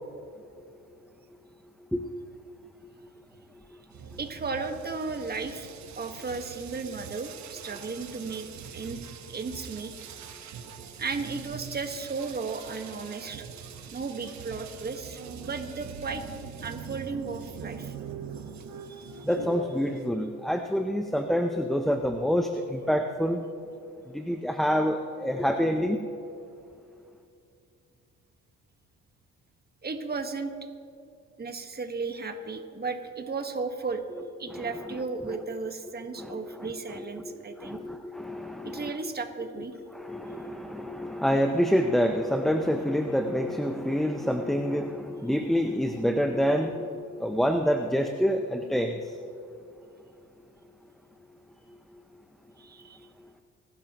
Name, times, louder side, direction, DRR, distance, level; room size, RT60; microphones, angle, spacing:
sound 1, 3.9-20.1, right 7 dB, 65° right, 1.2 m, -43 dB
voice 1, 4.2-5.7 6.0-9.0 9.3-9.9 11.0-13.5 13.9-16.2 16.6-17.9 19.0-19.3 29.8-30.5 31.4-34.0 34.4-37.8 38.6-39.7 52.6-53.0, right 4 dB, 30° right, 6 dB, 1.5 m, -35 dB
voice 2, 19.2-23.4 24.1-26.0 34.5-34.8 35.3-35.4 36.2-38.9 39.9-49.0, equal, ahead, 5 dB, 0.7 m, -27 dB
25.5 x 12.0 x 3.0 m, 2.5 s
cardioid pair, 90°, 30 cm